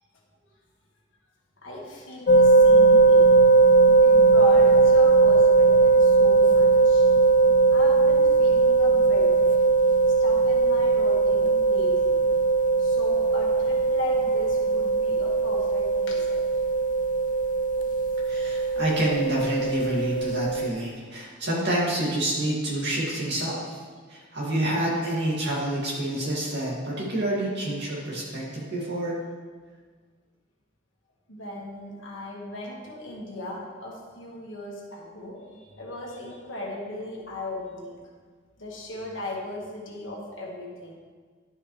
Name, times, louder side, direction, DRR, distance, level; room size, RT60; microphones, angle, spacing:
voice 1, 1.6-3.2 4.0-7.1 7.7-9.3 10.2-12.2 12.8-16.6 31.3-38.0 38.6-40.9, left 1 dB, 70° left, -3 dB, 1.7 m, -37 dB
sound 1, 2.3-20.7, right 3 dB, 40° left, 0.3 m, -19 dB
voice 2, 18.3-23.8 24.1-29.2, right 1 dB, 60° right, -5 dB, 2.3 m, -28 dB
11.5 x 5.5 x 3.3 m, 1.5 s
head